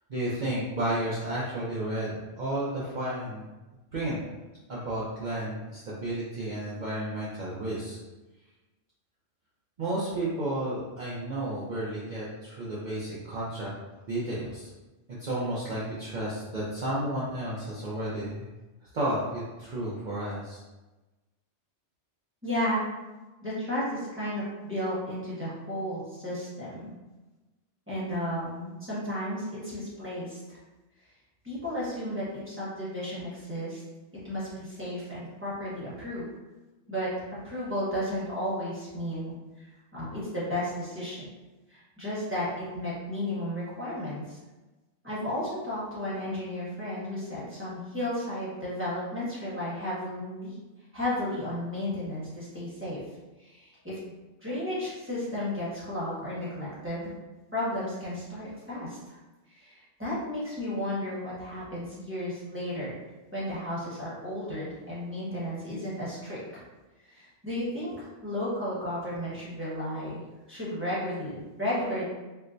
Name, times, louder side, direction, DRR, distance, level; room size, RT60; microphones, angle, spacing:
voice 1, 0.1-3.4 3.9-4.2 4.7-8.0 9.8-13.7 14.1-14.7 15.2-18.5 18.8-20.6, right 1 dB, 50° right, -8 dB, 0.7 m, -32 dB
voice 2, 22.4-22.8 23.4-26.9 27.9-30.6 31.4-33.8 34.2-36.2 36.9-37.1 37.4-41.3 41.7-44.4 45.0-50.5 50.9-53.0 53.4-54.0 54.4-57.1 57.5-59.2 59.5-63.0 63.3-66.6 67.1-70.2 70.5-72.0, left 1 dB, 10° right, -9 dB, 1.1 m, -33 dB
4.4 x 2.1 x 2.5 m, 1.1 s
omnidirectional pair, 1.2 m